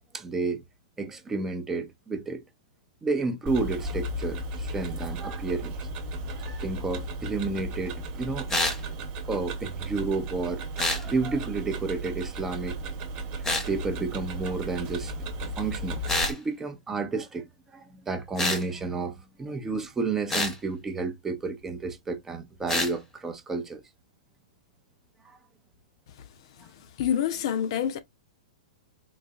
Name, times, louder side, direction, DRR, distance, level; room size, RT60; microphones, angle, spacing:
voice 1, 0.1-0.6 1.0-2.4 3.0-5.8 6.6-8.5 9.3-12.8 13.7-16.0 16.3-17.5 17.7-23.8 25.2-25.4, right 3 dB, 10° right, 0.5 m, -31 dB
Tick-tock, 3.5-16.3, right 1 dB, 30° right, 1.0 m, -35 dB
sound 1, 8.5-8.8 10.8-11.0 13.4-13.7 16.1-16.4 18.4-18.6 20.3-20.6 22.7-22.9, left 2 dB, 10° left, 0.9 m, -26 dB
voice 2, 27.0-28.0, left 9 dB, 50° left, 0.6 m, -27 dB
3.9 x 2.6 x 2.4 m
hypercardioid pair, 145°, 4 cm